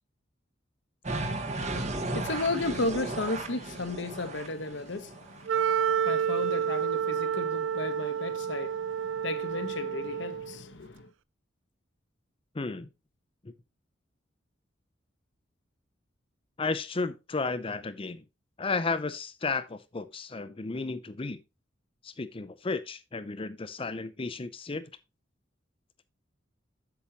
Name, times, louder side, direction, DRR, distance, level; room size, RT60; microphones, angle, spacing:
sound 1, 1.0-5.5, right 2 dB, 40° right, 1.4 m, -35 dB
voice 1, 1.9-11.1, left 2 dB, 70° left, 1.0 m, -34 dB
Wind instrument woodwind instrument, 5.5-10.6, right 8 dB, 85° right, 0.4 m, -29 dB
voice 2, 12.5-12.9 13.4-13.5 16.6-18.2 18.6-21.4 22.0-24.8, left 3 dB, 30° left, 0.6 m, -33 dB
8.3 x 7.2 x 2.9 m
head